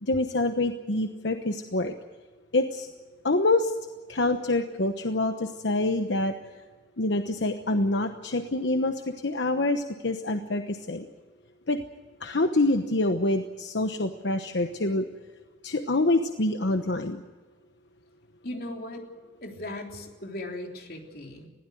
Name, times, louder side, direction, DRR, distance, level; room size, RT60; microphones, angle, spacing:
voice 1, 0.0-1.9 2.5-2.9 3.2-3.7 4.1-6.4 7.0-11.1 11.7-11.8 12.2-15.1 15.6-17.2, left 2 dB, 80° left, 7 dB, 1.1 m, -26 dB
voice 2, 18.4-19.1 19.4-21.5, left 1 dB, 55° left, 2 dB, 3.5 m, -38 dB
21.0 x 16.0 x 9.2 m, 1.4 s
head